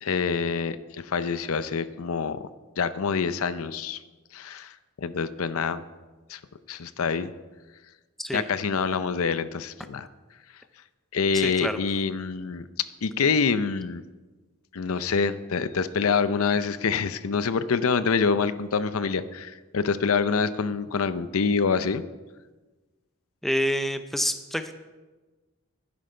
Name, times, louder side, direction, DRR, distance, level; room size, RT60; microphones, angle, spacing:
voice 1, 0.0-2.5 2.8-4.0 4.3-5.8 6.3-6.4 6.7-7.3 8.3-10.1 11.1-14.0 14.7-22.0, left 5 dB, 80° left, 13 dB, 0.6 m, -26 dB
voice 2, 11.3-11.8 23.4-24.7, equal, ahead, 8 dB, 0.5 m, -27 dB
11.5 x 10.5 x 4.4 m, 1.2 s
head